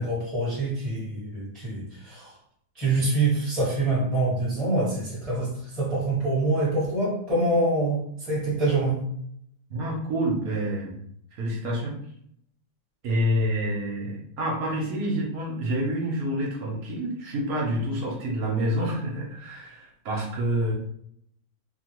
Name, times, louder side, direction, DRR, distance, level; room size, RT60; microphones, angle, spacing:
voice 1, 0.0-2.3 2.7-9.1, right 2 dB, ahead, -8 dB, 0.8 m, -25 dB
voice 2, 9.7-11.0 11.3-12.0 13.0-20.7, equal, 65° right, -2 dB, 1.0 m, -28 dB
3.0 x 2.3 x 2.9 m, 0.68 s
omnidirectional pair, 2.1 m